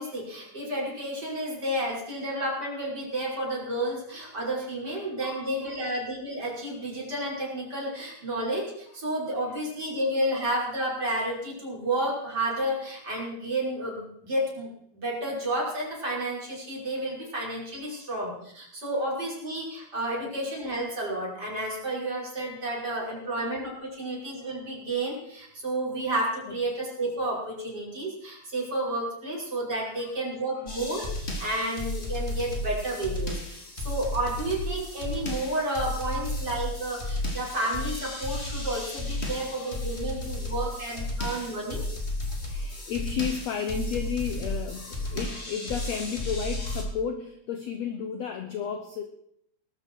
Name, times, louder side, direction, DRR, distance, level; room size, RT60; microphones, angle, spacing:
voice 1, 0.0-31.0 31.4-41.9, right 1 dB, 25° right, -4 dB, 5.8 m, -31 dB
voice 2, 4.9-5.8 9.5-9.6 17.2-17.3 17.9-18.1 20.2-20.3 23.2-23.4 24.0-24.2 29.9-30.1 30.5-30.7 31.4-31.5 36.2-36.3 39.2-39.6 40.1-41.2 42.3-49.0, left 7 dB, 70° left, 6 dB, 1.6 m, -34 dB
sound 1, 30.7-46.8, left 1 dB, 20° left, 2.1 m, -33 dB
20.0 x 13.0 x 4.6 m, 0.72 s
omnidirectional pair, 4.4 m